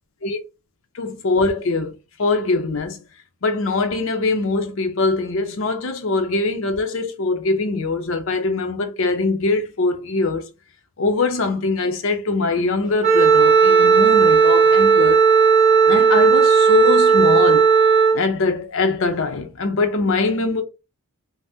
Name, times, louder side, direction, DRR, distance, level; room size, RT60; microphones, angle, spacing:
voice 1, 0.9-3.0 3.4-10.4 11.0-15.2 15.9-17.7 18.1-20.6, left 3 dB, 65° left, 0.5 m, -22 dB
Wind instrument woodwind instrument, 13.0-18.2, right 6 dB, 35° right, 0.7 m, -14 dB
2.6 x 2.0 x 3.4 m
head